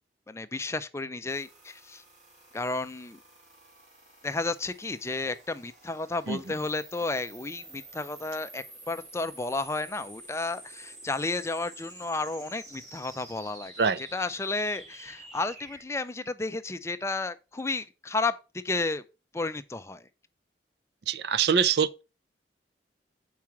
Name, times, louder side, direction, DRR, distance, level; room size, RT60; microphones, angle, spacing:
voice 1, 0.3-2.0 2.5-3.2 4.2-13.7 14.0-18.3 18.6-19.0 19.3-20.1, left 3 dB, 15° left, 0.4 m, -32 dB
sound 1, 1.3-15.8, right 2 dB, 40° right, 2.5 m, -49 dB
voice 2, 21.1-22.0, right 6 dB, 65° right, 0.4 m, -24 dB
5.9 x 4.7 x 5.8 m
head